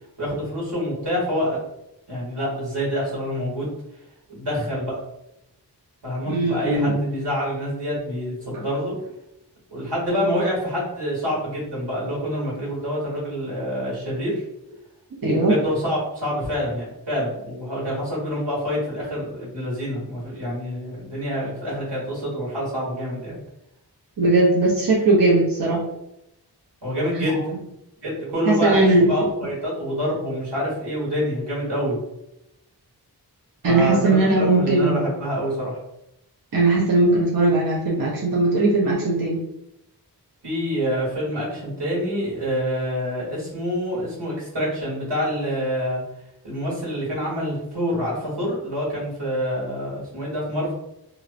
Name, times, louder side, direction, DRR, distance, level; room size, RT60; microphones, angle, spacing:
voice 1, 0.2-1.6 2.1-3.7 4.3-4.9 6.0-8.9 9.7-14.4 15.3-23.4 26.8-27.4 28.0-28.8 29.0-32.0 33.6-35.8 40.4-46.0 46.4-50.7, equal, 90° right, -6 dB, 1.3 m, -26 dB
voice 2, 6.3-7.0 8.5-8.6 15.2-15.5 24.2-25.8 27.1-27.5 28.4-29.1 33.6-35.0 36.5-39.4, right 2 dB, 55° right, -5 dB, 0.7 m, -19 dB
2.9 x 2.0 x 2.4 m, 0.85 s
wide cardioid pair, 50°, 40 cm